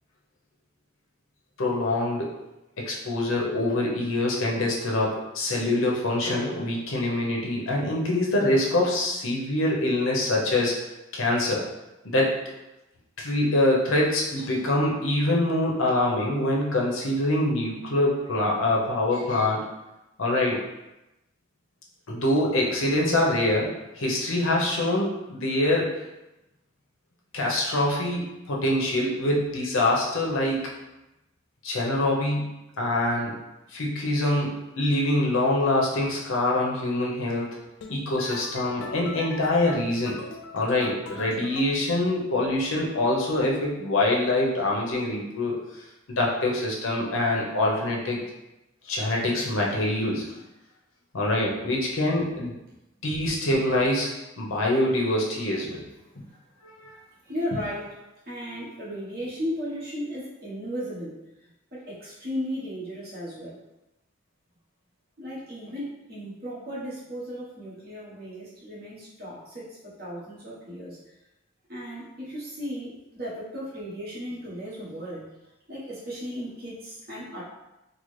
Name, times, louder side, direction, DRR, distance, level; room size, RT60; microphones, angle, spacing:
voice 1, 1.6-2.3 2.8-10.8 11.1-11.6 12.0-12.3 13.2-19.6 20.2-20.6 22.1-26.0 27.3-30.7 31.6-33.3 33.7-37.5 37.9-40.2 40.5-45.5 46.2-48.2 48.8-50.4 51.1-52.5 53.0-55.8 56.6-56.9, left 1 dB, 80° left, -2 dB, 0.8 m, -25 dB
sound 1, 37.8-41.6, left 4 dB, 65° left, 0.4 m, -40 dB
voice 2, 56.0-56.4 57.2-63.6 65.2-71.0 71.7-75.3 75.7-77.4, equal, 50° right, -7 dB, 1.2 m, -36 dB
3.8 x 2.0 x 3.2 m, 0.96 s
head